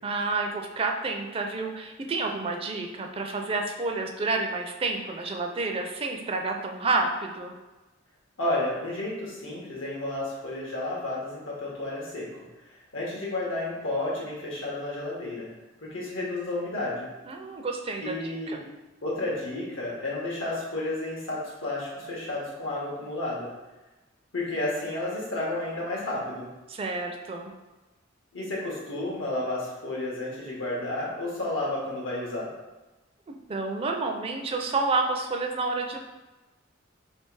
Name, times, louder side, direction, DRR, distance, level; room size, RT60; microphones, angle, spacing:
voice 1, 0.0-7.5 17.3-18.6 26.7-27.5 33.3-36.0, right 3 dB, 30° right, 3 dB, 0.4 m, -29 dB
voice 2, 8.4-12.3 12.7-15.5 15.8-17.1 18.0-18.6 19.0-23.5 24.3-26.5 28.3-32.5, left 2 dB, 85° left, -4 dB, 1.5 m, -31 dB
3.3 x 3.0 x 4.5 m, 1.1 s
head